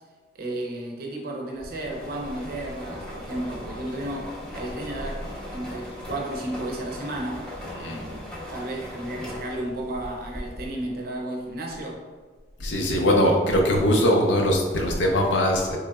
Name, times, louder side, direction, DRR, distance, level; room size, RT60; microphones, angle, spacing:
voice 1, 0.3-7.5 7.8-8.2 8.5-12.0, right 1 dB, 55° right, 0 dB, 0.6 m, -33 dB
sound 1, 1.6-10.9, left 1 dB, 5° left, 0.7 m, -38 dB
voice 2, 12.6-15.8, equal, 85° left, 1 dB, 0.6 m, -21 dB
3.8 x 3.3 x 2.2 m, 1.4 s
head